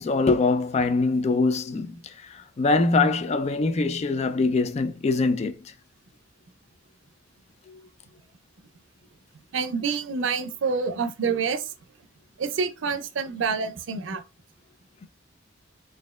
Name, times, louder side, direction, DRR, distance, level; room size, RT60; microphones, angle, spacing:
voice 1, 0.0-5.6, left 3 dB, 35° left, 0.4 m, -23 dB
voice 2, 9.5-11.7 12.4-14.2, right 5 dB, 85° right, 0.5 m, -27 dB
4.2 x 2.6 x 2.3 m
head